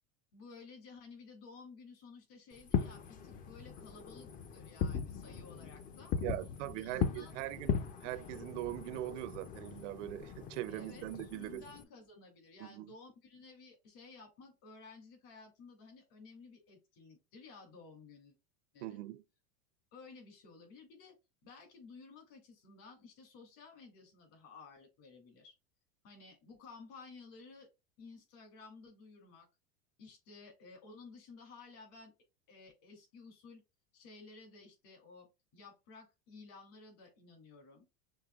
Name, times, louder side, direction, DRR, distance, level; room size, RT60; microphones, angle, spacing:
voice 1, 0.3-6.1 6.8-7.3 10.7-18.3 18.7-19.0 19.9-25.5 26.0-27.7 28.0-29.5 30.0-32.1 32.5-33.6 33.9-37.9, left 4 dB, 60° left, 2.7 m, -55 dB
Fireworks, 2.6-11.8, left 7 dB, 25° left, 0.4 m, -39 dB
voice 2, 6.2-11.6 12.6-12.9 18.8-19.2, right 16 dB, 85° right, 0.6 m, -41 dB
6.4 x 3.2 x 2.3 m
supercardioid pair, 135°, 36 cm